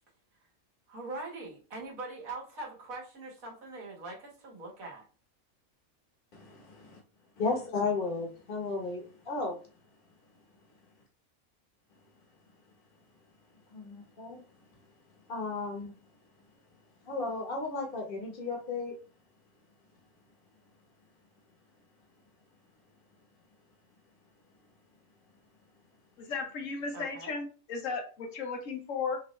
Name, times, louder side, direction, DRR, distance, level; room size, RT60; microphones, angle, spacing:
voice 1, 0.9-5.0 26.9-27.4, right 2 dB, 70° right, -2 dB, 1.8 m, -42 dB
voice 2, 6.3-7.0 7.4-9.6 13.7-14.4 15.3-15.9 17.1-18.9, left 3 dB, 40° left, 1 dB, 1.2 m, -34 dB
voice 3, 26.2-29.2, left 4 dB, 65° left, 5 dB, 1.1 m, -35 dB
5.2 x 2.6 x 3.1 m, 0.37 s
omnidirectional pair, 1.5 m